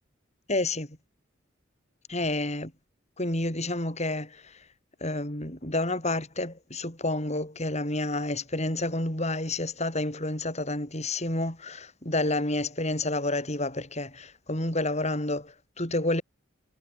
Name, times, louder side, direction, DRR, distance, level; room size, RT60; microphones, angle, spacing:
voice 1, 0.5-1.0 2.1-2.7 3.2-4.6 5.0-16.2, left 2 dB, 35° left, 7.8 m, -29 dB
head